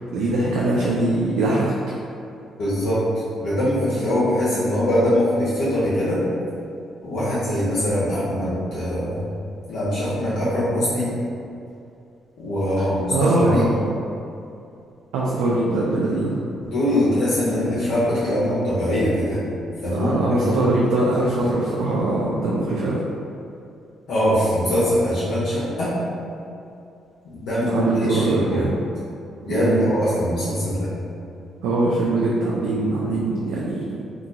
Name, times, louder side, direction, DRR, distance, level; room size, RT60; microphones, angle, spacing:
voice 1, 0.1-1.7 13.1-13.7 15.1-16.4 19.9-23.0 27.7-28.7 29.5-29.9 31.6-34.0, right 2 dB, 90° right, -5 dB, 0.4 m, -22 dB
voice 2, 2.6-6.2 7.0-9.2 9.7-11.1 12.4-13.7 16.6-19.4 19.8-20.5 24.1-25.9 27.3-28.7 29.4-30.9, equal, 75° left, -10 dB, 0.8 m, -22 dB
2.9 x 2.3 x 3.7 m, 2.6 s
cardioid pair, 90°, 0 cm